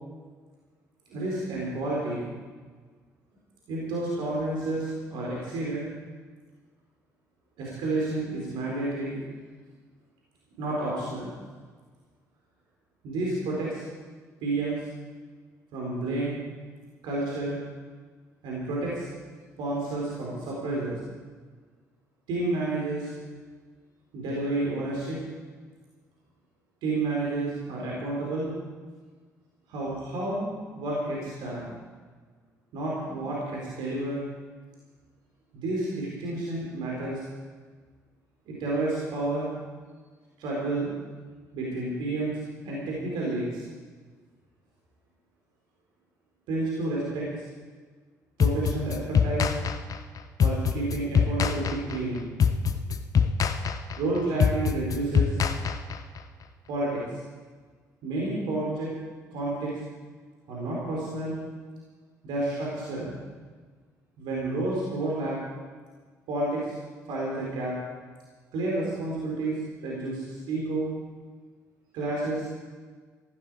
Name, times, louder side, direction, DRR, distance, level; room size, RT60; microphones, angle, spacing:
voice 1, 1.1-2.3 3.7-5.9 7.6-9.2 10.6-11.3 13.0-13.8 14.4-14.8 15.7-16.4 17.0-17.6 18.4-19.0 19.6-21.0 22.3-23.1 24.1-25.2 26.8-28.5 29.7-31.7 32.7-34.2 35.5-37.2 38.5-39.5 40.4-40.9 41.5-43.6 46.5-47.3 48.4-49.5 50.4-52.3 54.0-55.3 56.7-57.0 58.0-59.0 59.3-59.8 60.5-61.4 62.2-63.2 64.2-65.4 66.3-66.7 67.1-67.8 68.5-70.9 71.9-72.5, right 2 dB, 60° right, -4 dB, 4.4 m, -30 dB
sound 1, 48.4-56.2, left 6 dB, 40° left, 0.9 m, -24 dB
15.5 x 15.5 x 4.9 m, 1.4 s
figure-of-eight pair, 45°, 9 cm